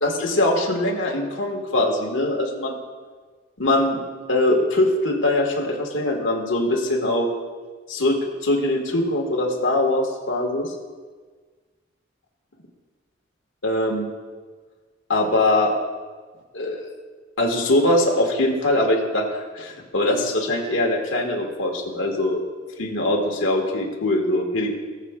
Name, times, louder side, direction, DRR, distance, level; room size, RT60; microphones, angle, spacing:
voice 1, 0.0-2.8 3.6-4.0 4.3-7.3 7.9-10.7 13.6-14.1 15.1-15.7 16.5-16.8 17.4-22.4 22.8-24.7, left 1 dB, 85° left, -1 dB, 1.8 m, -22 dB
18.5 x 7.4 x 2.4 m, 1.4 s
head